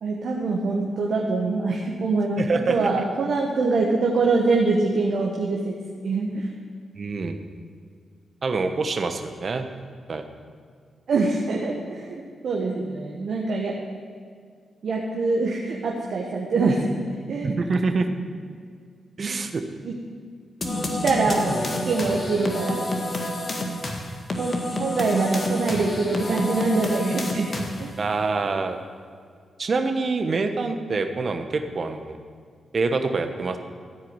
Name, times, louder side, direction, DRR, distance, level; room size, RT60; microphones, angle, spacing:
voice 1, 0.0-2.4 2.7-5.8 6.0-6.5 11.1-13.8 14.8-17.6 19.2-19.4 19.8-19.9 20.7-22.9 23.2-23.3 24.4-28.0, right 3 dB, 70° right, -1 dB, 1.3 m, -24 dB
voice 2, 2.4-2.9 7.0-7.4 8.4-9.7 10.1-10.2 17.4-18.1 19.2-19.6 28.0-28.8 29.6-32.2 32.7-33.6, right 3 dB, 55° right, 6 dB, 1.1 m, -25 dB
sound 1, 20.6-28.0, left 1 dB, 40° left, 1.8 m, -29 dB
14.0 x 4.9 x 8.8 m, 2.1 s
supercardioid pair, 50°, 0 cm